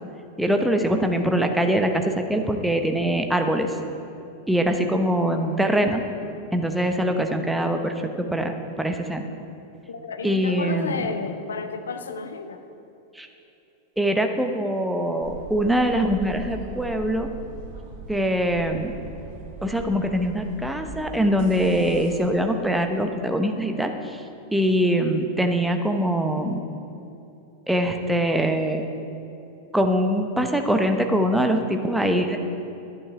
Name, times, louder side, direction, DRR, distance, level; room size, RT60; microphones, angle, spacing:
voice 1, 0.4-3.7 4.5-6.0 6.5-9.3 10.2-11.1 13.2-13.3 14.0-17.3 18.1-18.9 19.6-24.2 24.5-26.6 27.7-28.8 29.7-32.4, equal, 5° right, 5 dB, 0.8 m, -23 dB
voice 2, 9.9-12.6, left 5 dB, 70° left, 7 dB, 0.8 m, -32 dB
sound 1, 15.2-22.2, right 4 dB, 50° right, 1.3 m, -39 dB
12.0 x 8.7 x 4.9 m, 2.9 s
figure-of-eight pair, 90°, 0 cm